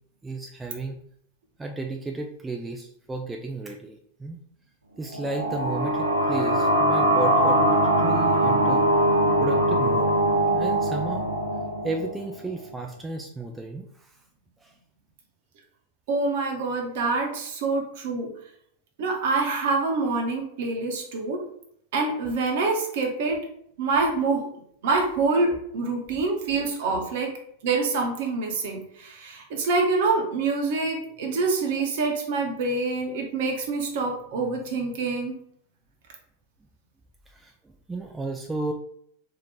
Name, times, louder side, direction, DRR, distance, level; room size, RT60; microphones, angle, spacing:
voice 1, 0.2-1.0 1.6-4.4 5.0-8.9 9.4-10.2 10.5-11.3 11.8-14.2 14.6-14.7 26.1-26.2 37.3-38.7, right 3 dB, 10° right, 2 dB, 0.3 m, -33 dB
sound 1, 5.1-12.5, right 1 dB, 80° right, 0.6 m, -22 dB
voice 2, 16.1-18.3 19.0-21.4 21.9-23.4 23.8-24.5 24.8-27.3 27.6-35.4, right 3 dB, 50° right, 1 dB, 0.9 m, -26 dB
2.8 x 2.5 x 4.1 m, 0.69 s
figure-of-eight pair, 90°, 0 cm